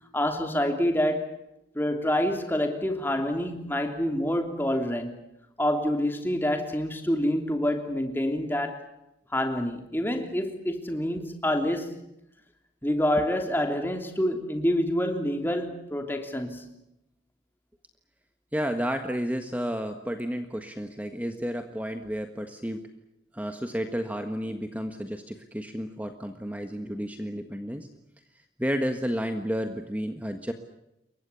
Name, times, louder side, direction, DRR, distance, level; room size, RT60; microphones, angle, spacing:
voice 1, 0.1-1.4 1.7-5.1 5.6-8.9 9.3-12.0 12.8-16.9, left 1 dB, 10° left, 3.1 m, -27 dB
voice 2, 18.5-22.9 23.3-27.9 28.6-30.5, equal, 10° right, 1.5 m, -31 dB
29.0 x 23.5 x 7.0 m
head